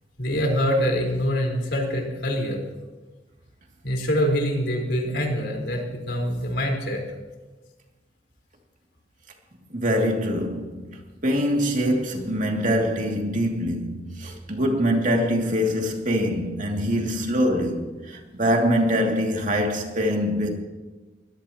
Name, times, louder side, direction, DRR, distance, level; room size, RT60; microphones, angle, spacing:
voice 1, 0.2-2.6 3.8-7.0, equal, 70° left, 4.6 m, -25 dB
voice 2, 9.7-20.5, equal, 45° right, 2.7 m, -24 dB
23.5 x 17.0 x 3.0 m
head